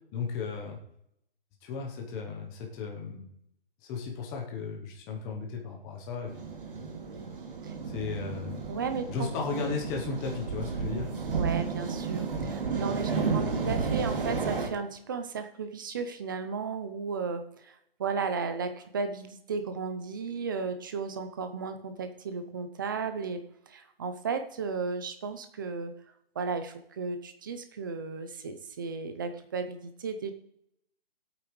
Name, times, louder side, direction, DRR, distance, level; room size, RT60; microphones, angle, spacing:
voice 1, 0.1-0.8 1.6-3.3 3.9-6.5 7.9-8.7 9.1-11.1, left 5 dB, 10° left, 0 dB, 0.9 m, -35 dB
sound 1, 6.3-14.7, right 5 dB, 60° right, 2.6 m, -32 dB
voice 2, 8.7-9.3 11.3-23.4 23.7-25.9 26.3-30.3, right 5 dB, 20° right, 8 dB, 0.6 m, -34 dB
17.0 x 8.7 x 3.2 m, 0.76 s
hypercardioid pair, 165°, 30 cm